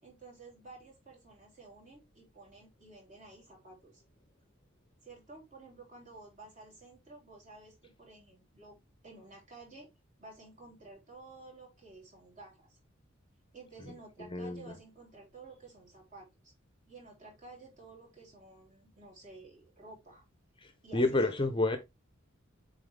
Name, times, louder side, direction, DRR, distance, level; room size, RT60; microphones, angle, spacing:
voice 1, 0.0-4.0 5.0-8.8 9.0-9.9 10.2-12.8 13.5-16.5 16.9-20.2 20.8-21.7, right 3 dB, 40° right, 3.8 m, -53 dB
voice 2, 14.3-14.6 20.6-21.8, left 2 dB, 25° left, 0.8 m, -29 dB
7.6 x 4.0 x 3.4 m
head